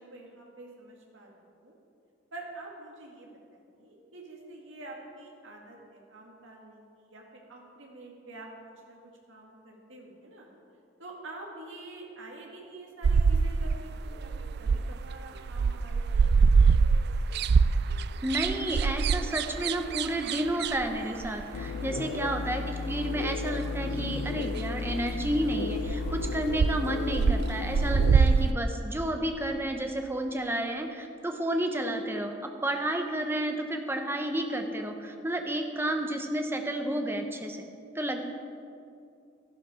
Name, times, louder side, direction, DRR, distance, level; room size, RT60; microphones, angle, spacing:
voice 1, 0.0-1.8 2.3-7.2 7.5-10.5 11.0-16.4 21.7-22.3, right 2 dB, 70° right, -1 dB, 2.0 m, -47 dB
sound 1, 13.0-15.2 15.5-21.4 23.8-23.9 24.3-24.4 24.5-24.6 24.9-25.3 25.6-26.8 27.1-28.5, right 5 dB, 55° right, 0.3 m, -24 dB
voice 2, 18.2-37.7 37.9-38.3, right 1 dB, 10° right, 4 dB, 0.9 m, -31 dB
sound 2, 21.5-28.2, left 4 dB, 85° left, 0.5 m, -34 dB
12.5 x 11.5 x 5.0 m, 2.5 s
head